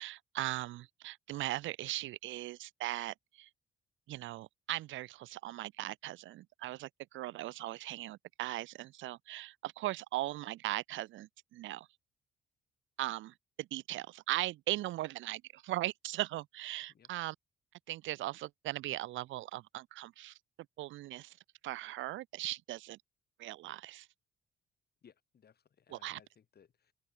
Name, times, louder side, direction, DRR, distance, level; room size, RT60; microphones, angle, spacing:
voice 1, 0.0-3.5 4.1-11.9 13.0-17.3 17.9-20.4 20.8-21.4 21.6-23.0 23.4-24.1 25.9-26.2, right 16 dB, 75° right, 0.5 m, -39 dB
voice 2, 25.0-26.9, left 7 dB, 55° left, 7.6 m, -63 dB
open air
cardioid pair, 90°, 20 cm